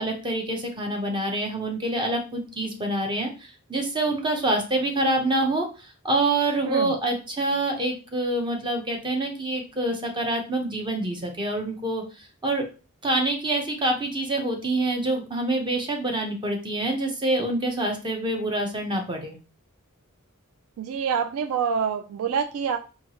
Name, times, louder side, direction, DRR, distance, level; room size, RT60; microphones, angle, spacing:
voice 1, 0.0-5.7 6.0-12.0 12.4-12.6 13.0-19.4, right 2 dB, 20° right, 2 dB, 0.7 m, -26 dB
voice 2, 20.8-22.8, right 6 dB, 70° right, 7 dB, 0.3 m, -26 dB
4.3 x 2.4 x 2.9 m, 0.33 s
head